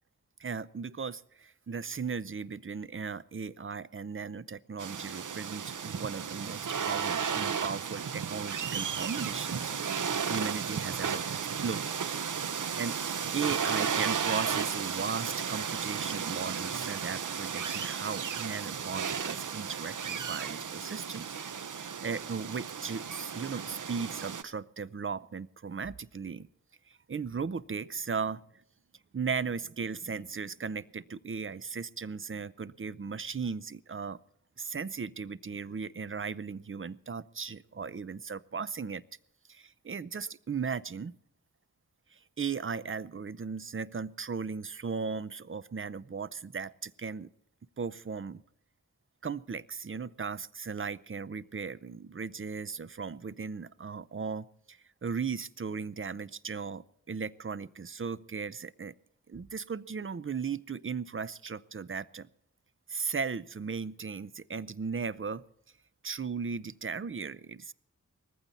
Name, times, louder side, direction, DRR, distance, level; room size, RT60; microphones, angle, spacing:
voice 1, 0.4-11.2 11.6-11.8 12.8-13.0 13.3-21.4 21.7-26.5 26.9-28.4 29.1-34.2 34.6-39.0 39.5-41.2 42.1-47.3 47.8-48.4 49.2-58.9 59.3-62.3 62.9-65.4 66.0-67.7, right 5 dB, 40° right, 18 dB, 0.7 m, -37 dB
sound 1, 4.8-24.4, right 7 dB, 75° right, 0.8 m, -34 dB
19.0 x 15.0 x 4.1 m, 0.70 s
cardioid pair, 55°, 31 cm